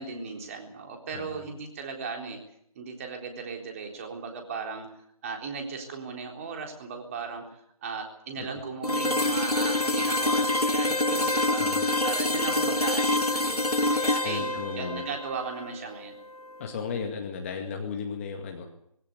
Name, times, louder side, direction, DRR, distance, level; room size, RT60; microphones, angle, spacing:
voice 1, 0.0-2.4 2.8-4.9 5.2-11.6 12.0-16.2, right 5 dB, 25° right, 3 dB, 3.8 m, -37 dB
voice 2, 1.1-1.5 8.4-8.6 11.6-11.8 14.2-15.0 16.6-18.7, left 6 dB, 20° left, 3 dB, 2.1 m, -35 dB
sound 1, 8.8-16.7, left 2 dB, 90° left, 2.2 m, -27 dB
21.5 x 16.5 x 8.4 m, 0.72 s
figure-of-eight pair, 155°, 19 cm